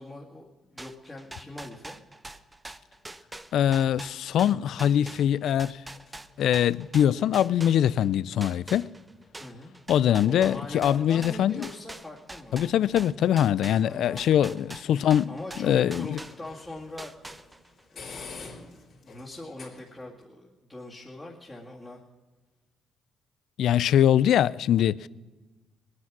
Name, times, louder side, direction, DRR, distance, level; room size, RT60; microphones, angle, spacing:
voice 1, 0.0-2.0 9.4-9.7 10.2-12.6 13.8-14.4 15.3-17.1 17.9-18.6 19.0-22.0, left 2 dB, 15° left, 2.1 m, -42 dB
sound 1, 0.8-8.1 8.4-16.7 17.0-17.8, right 2 dB, 15° right, 0.7 m, -43 dB
sound 2, 2.8-20.2, left 4 dB, 55° left, 3.5 m, -52 dB
voice 2, 3.5-5.8 6.4-8.9 9.9-11.7 12.5-15.3 15.6-16.2 23.6-25.1, left 10 dB, 75° left, 0.3 m, -23 dB
19.5 x 9.6 x 6.1 m
cardioid pair, 90°, 0 cm